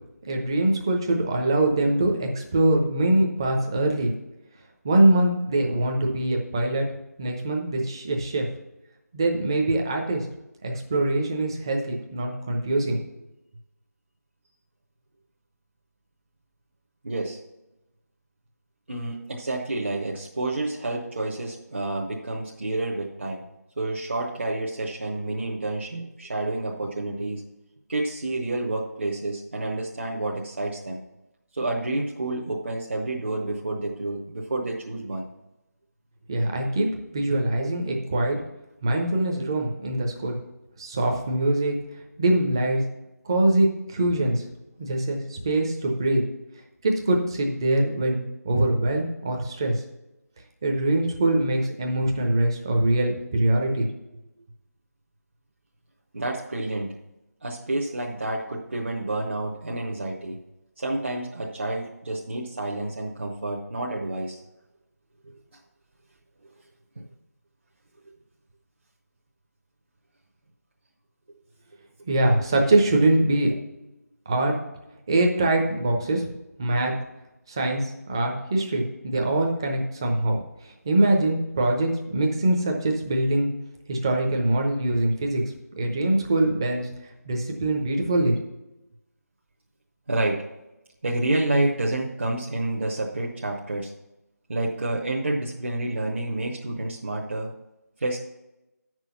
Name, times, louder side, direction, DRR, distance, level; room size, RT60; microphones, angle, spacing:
voice 1, 0.3-4.1 4.8-6.8 7.2-8.4 9.1-10.3 10.6-13.0 36.3-36.9 37.1-38.4 38.8-40.4 40.8-41.8 42.2-42.8 43.2-44.4 44.8-46.2 46.8-49.8 50.6-53.9 72.1-73.5 74.3-74.5 75.1-76.3 76.6-76.9 77.5-80.4 80.6-83.5 83.9-85.4 85.8-86.9 87.3-88.3, right 1 dB, 15° right, 2 dB, 0.8 m, -23 dB
voice 2, 17.0-17.4 18.9-23.4 23.8-27.4 27.9-31.0 31.5-35.2 56.1-56.9 57.4-60.4 60.8-64.4 67.0-67.1 71.3-71.4 90.1-90.4 91.0-93.9 94.5-97.5 98.0-98.2, right 2 dB, 40° right, -2 dB, 1.1 m, -29 dB
8.5 x 6.2 x 5.7 m, 0.94 s
figure-of-eight pair, 170°, 9 cm